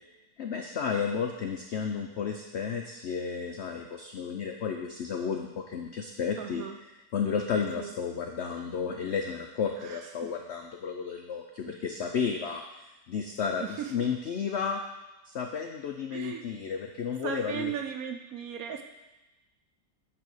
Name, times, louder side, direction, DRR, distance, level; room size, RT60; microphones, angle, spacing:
voice 1, 0.4-6.6 7.1-12.6 13.1-14.8 15.3-17.7, left 6 dB, 80° left, 3 dB, 0.6 m, -32 dB
voice 2, 6.4-6.8 7.8-7.9 9.8-10.3 11.7-11.8 13.6-14.1 16.1-16.5 17.2-18.8, right 8 dB, 70° right, 5 dB, 0.9 m, -37 dB
8.7 x 3.5 x 6.2 m, 1.0 s
omnidirectional pair, 1.9 m